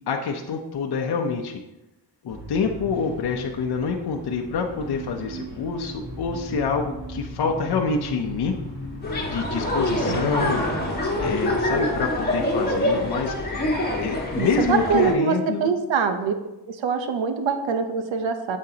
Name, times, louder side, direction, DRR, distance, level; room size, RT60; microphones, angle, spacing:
voice 1, 0.1-1.6 2.2-8.5 9.3-10.6 11.2-13.3 14.0-15.7, left 5 dB, 60° left, 2 dB, 0.8 m, -26 dB
sound 1, 2.3-11.6, right 1 dB, 25° right, 2.0 m, -37 dB
sound 2, 9.0-15.1, left 1 dB, 20° left, 1.7 m, -25 dB
voice 2, 10.1-10.7 14.4-15.4 15.6-16.3 16.7-18.6, right 6 dB, 85° right, 8 dB, 0.9 m, -24 dB
8.9 x 7.4 x 2.8 m, 0.97 s
wide cardioid pair, 120°, 44 cm